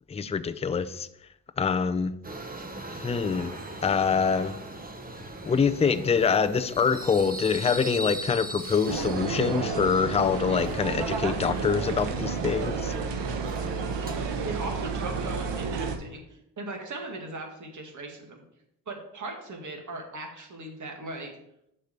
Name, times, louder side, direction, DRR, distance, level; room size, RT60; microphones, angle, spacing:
voice 1, 0.1-1.1 1.6-2.1 2.9-3.5 3.8-4.5 5.5-12.9, left 6 dB, 15° left, 10 dB, 0.5 m, -25 dB
Subway metro underground, 2.2-14.2, right 2 dB, 20° right, 1.2 m, -40 dB
sound 1, 8.8-16.0, right 5 dB, 80° right, 1.1 m, -31 dB
voice 2, 14.4-18.4 18.9-21.3, right 2 dB, 45° right, 2 dB, 2.1 m, -38 dB
6.5 x 5.0 x 6.9 m, 0.78 s
cardioid pair, 80°, 42 cm